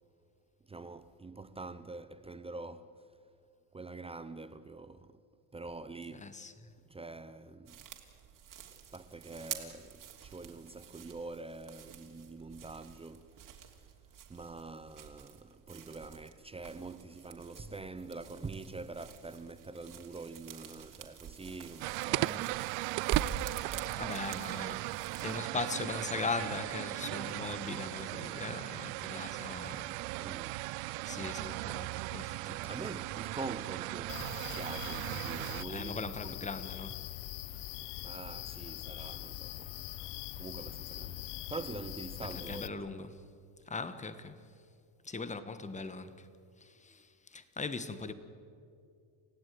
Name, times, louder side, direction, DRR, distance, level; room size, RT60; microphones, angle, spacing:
voice 1, 0.7-2.9 3.7-5.2 5.5-6.3 6.9-7.9 8.9-13.3 14.3-22.5 24.0-24.2 30.2-30.6 32.7-36.3 38.0-39.8 40.4-42.7, right 3 dB, 10° right, 0.7 m, -45 dB
voice 2, 6.1-6.7 17.6-17.7 22.1-22.5 24.0-30.0 30.6-33.0 35.7-37.0 42.2-43.2 43.7-44.4 45.0-46.3 46.6-48.1, left 4 dB, 15° left, 1.5 m, -40 dB
sound 1, 7.7-25.4, right 8 dB, 45° right, 3.2 m, -46 dB
sound 2, 21.8-35.6, right 24 dB, 70° right, 0.5 m, -37 dB
sound 3, 34.1-42.7, left 14 dB, 60° left, 1.0 m, -42 dB
29.5 x 15.5 x 9.5 m
cardioid pair, 125°, 47 cm